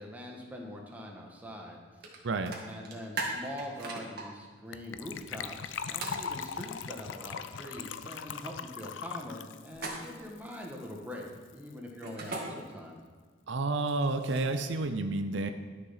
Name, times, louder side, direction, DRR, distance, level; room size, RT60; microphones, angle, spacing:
voice 1, 0.0-2.2 2.6-13.0, left 1 dB, 10° right, -1 dB, 1.4 m, -43 dB
sound 1, 2.0-2.2 2.5-4.2 6.0-6.2 9.7-10.3 12.0-12.4 13.8-14.7, right 3 dB, 55° right, 1.8 m, -38 dB
voice 2, 2.2-2.6 13.5-15.5, right 2 dB, 75° right, 8 dB, 0.6 m, -30 dB
Gurgling / Trickle dribble / Fill (with liquid), 4.7-11.0 11.2-11.3 11.5-11.7 12.0-12.1, left 6 dB, 80° left, 0.5 m, -40 dB
11.5 x 6.9 x 5.7 m, 1.5 s
head